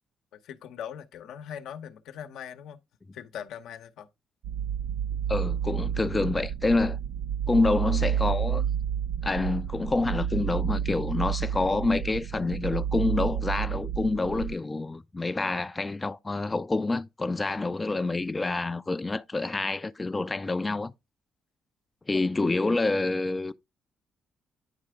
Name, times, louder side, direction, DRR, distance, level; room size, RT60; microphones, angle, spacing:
voice 1, 0.3-2.8 3.1-4.1 6.0-6.4 22.1-22.4, left 9 dB, 80° left, 0.8 m, -41 dB
sound 1, 4.4-14.5, right 9 dB, 85° right, 0.3 m, -30 dB
voice 2, 5.3-7.0 7.5-8.7 9.2-20.9 22.1-23.5, left 3 dB, 20° left, 0.4 m, -27 dB
9.8 x 3.3 x 4.8 m
cardioid pair, 90°, 0 cm